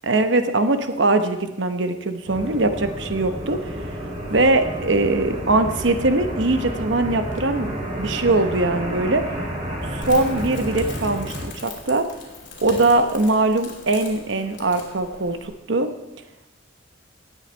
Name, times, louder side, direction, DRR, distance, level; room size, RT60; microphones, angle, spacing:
voice 1, 0.0-3.7 4.3-9.3 9.9-12.1 12.6-15.9, right 2 dB, 70° right, 8 dB, 0.9 m, -21 dB
sound 1, 2.3-11.4, equal, 30° right, 4.7 m, -30 dB
Crackle, 10.0-15.5, left 3 dB, 60° left, 2.9 m, -40 dB
18.5 x 8.1 x 4.4 m, 1.0 s
head